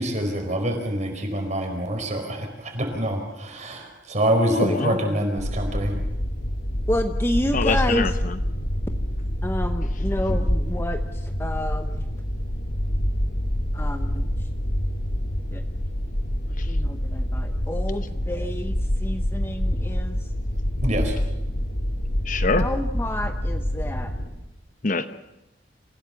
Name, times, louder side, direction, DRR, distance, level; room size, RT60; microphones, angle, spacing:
voice 1, 0.0-5.9 20.8-21.2, right 1 dB, 40° right, 3 dB, 4.7 m, -26 dB
voice 2, 4.5-5.2 7.5-8.4 9.9-10.0 16.6-16.8 22.2-22.7 24.8-25.1, left 3 dB, 45° left, 10 dB, 0.9 m, -25 dB
sound 1, 5.4-24.3, equal, 90° left, 3.4 m, -26 dB
voice 3, 6.9-8.1 9.4-11.0 11.4-12.0 13.7-14.3 15.5-15.6 16.7-18.7 19.0-20.2 22.6-24.1, left 1 dB, 15° left, 6 dB, 0.9 m, -29 dB
27.5 x 16.5 x 7.1 m, 0.91 s
head